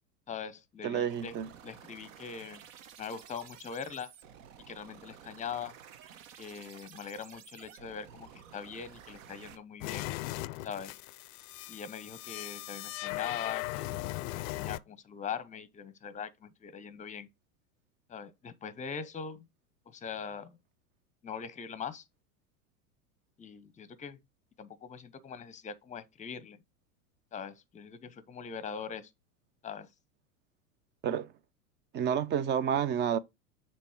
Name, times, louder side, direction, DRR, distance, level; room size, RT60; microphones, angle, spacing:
voice 1, 0.3-1.4 1.6-2.6 3.0-4.1 4.7-5.8 6.4-10.1 10.6-11.0 11.7-17.3 18.1-19.5 19.9-20.6 21.2-22.0 23.4-24.2 24.6-26.6 27.3-29.1 29.6-29.9, left 7 dB, 15° left, 0.8 m, -42 dB
voice 2, 0.8-1.5 31.0-31.3 31.9-33.2, right 8 dB, 25° right, 0.5 m, -29 dB
sound 1, 1.1-9.6, right 9 dB, 60° right, 1.2 m, -53 dB
sound 2, 9.8-14.8, left 19 dB, 45° left, 0.5 m, -38 dB
7.0 x 3.1 x 4.4 m
hypercardioid pair, 95°, 45 cm